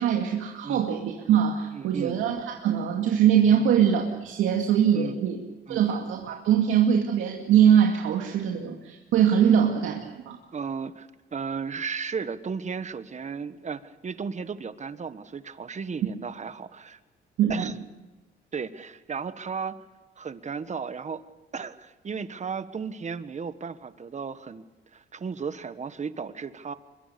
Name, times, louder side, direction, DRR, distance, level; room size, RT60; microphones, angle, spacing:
voice 1, 0.0-5.4 5.7-10.4 17.4-17.7, right 9 dB, 90° right, 1 dB, 2.3 m, -22 dB
voice 2, 1.7-2.2 3.6-3.7 4.9-5.2 5.7-5.9 10.5-17.0 17.5-17.7 18.5-19.8 20.2-21.2 21.5-24.6 24.9-26.7, right 5 dB, 35° right, 12 dB, 1.4 m, -34 dB
24.5 x 23.0 x 6.9 m, 1.2 s
cardioid pair, 90°, 20 cm